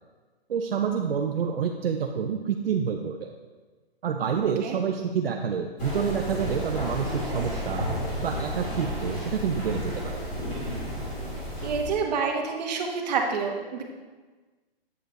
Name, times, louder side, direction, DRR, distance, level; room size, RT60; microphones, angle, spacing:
voice 1, 0.5-3.3 4.0-7.9 8.2-10.2, right 7 dB, 70° right, 3 dB, 0.7 m, -28 dB
sound 1, 5.8-11.9, equal, 20° left, 2.1 m, -32 dB
voice 2, 11.6-13.8, right 5 dB, 45° right, 1 dB, 1.2 m, -28 dB
8.1 x 5.1 x 3.9 m, 1.3 s
hypercardioid pair, 155°, 31 cm